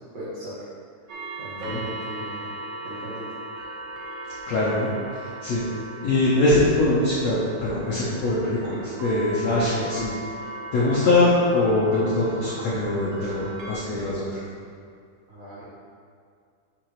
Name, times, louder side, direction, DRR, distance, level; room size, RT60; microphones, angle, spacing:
voice 1, 0.1-0.7 1.1-2.5 2.8-3.2 15.3-15.6, equal, 45° right, -12 dB, 2.3 m, -37 dB
sound 1, 1.1-13.7, right 2 dB, 85° right, 1.7 m, -38 dB
voice 2, 4.5-5.6 6.0-10.1 10.7-14.4, left 2 dB, 80° left, -8 dB, 1.5 m, -22 dB
8.8 x 6.4 x 3.2 m, 2.3 s
omnidirectional pair, 4.8 m